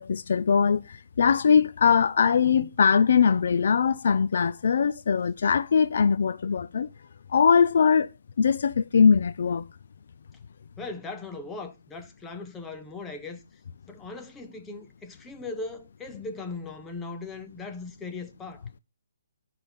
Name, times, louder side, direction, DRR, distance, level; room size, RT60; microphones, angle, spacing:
voice 1, 0.0-6.9 7.3-8.1 8.4-9.6, left 6 dB, 45° left, 0.4 m, -21 dB
voice 2, 10.8-13.4 13.9-18.7, left 3 dB, 5° left, 0.7 m, -38 dB
11.5 x 5.8 x 5.3 m
hypercardioid pair, 175°, 0 cm